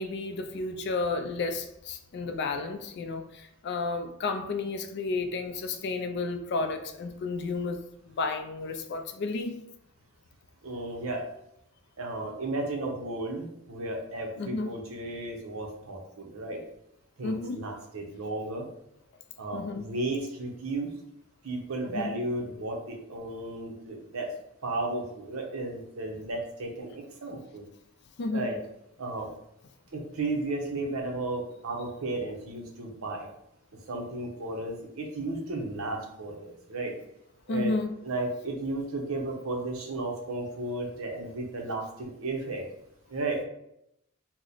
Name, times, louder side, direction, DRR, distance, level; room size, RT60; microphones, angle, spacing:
voice 1, 0.0-9.5 14.4-14.7 17.2-17.6 19.5-19.8 21.9-22.1 28.2-28.5 37.5-37.9, left 3 dB, 55° left, 7 dB, 0.4 m, -32 dB
voice 2, 10.6-11.2 12.0-16.6 17.2-18.7 19.4-20.9 21.4-24.3 24.6-27.6 28.3-28.6 29.0-29.3 29.9-33.3 33.9-36.9 37.5-37.7 38.0-42.6 43.1-43.4, right 2 dB, 80° right, 1 dB, 0.7 m, -34 dB
2.9 x 2.0 x 3.8 m, 0.79 s
head